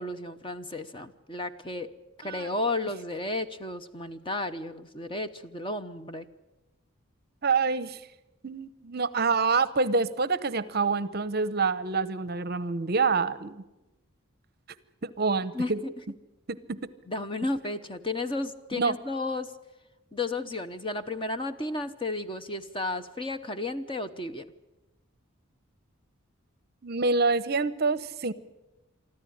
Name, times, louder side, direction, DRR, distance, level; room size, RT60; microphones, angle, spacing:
voice 1, 0.0-1.9 2.2-6.3 15.5-15.9 17.1-19.5 20.1-24.5, left 2 dB, 25° left, 10 dB, 0.8 m, -33 dB
voice 2, 7.4-8.0 8.4-13.6 15.0-15.8 16.5-16.8 18.7-19.0 26.8-28.3, right 4 dB, 45° right, 17 dB, 0.8 m, -27 dB
25.0 x 14.0 x 10.0 m, 1.0 s
head